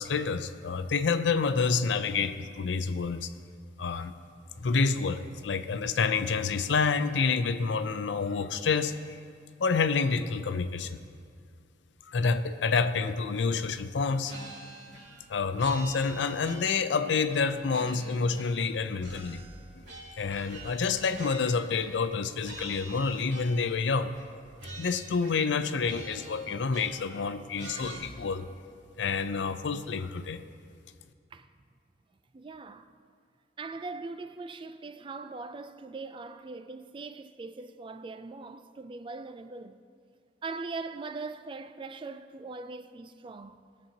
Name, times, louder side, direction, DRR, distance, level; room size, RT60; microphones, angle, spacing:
voice 1, 0.0-3.3 3.8-4.1 4.6-8.9 9.6-11.0 12.1-14.3 15.3-19.4 20.2-24.2 24.8-28.5 29.0-30.4, left 5 dB, 85° left, 0.5 m, -28 dB
sound 1, 14.3-15.3 15.6-16.9 17.3-18.7 19.0-22.1 22.4-23.8 24.1-24.3 24.6-25.6 25.8-27.2 27.6-28.0, right 2 dB, 90° right, 2.4 m, -46 dB
voice 2, 32.3-32.9 33.6-39.8 40.4-43.6, right 3 dB, 30° right, 0.3 m, -41 dB
19.5 x 7.4 x 2.9 m
head